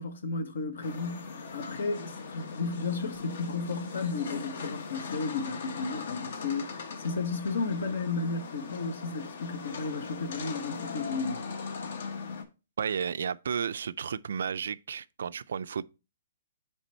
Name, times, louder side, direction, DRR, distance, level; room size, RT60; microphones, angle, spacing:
voice 1, 0.0-11.4, left 4 dB, 70° left, 1.2 m, -33 dB
sound 1, 0.8-12.4, left 5 dB, 50° left, 0.9 m, -40 dB
voice 2, 12.8-15.8, right 7 dB, 70° right, 0.3 m, -32 dB
8.1 x 3.3 x 4.3 m
hypercardioid pair, 175°, 0 cm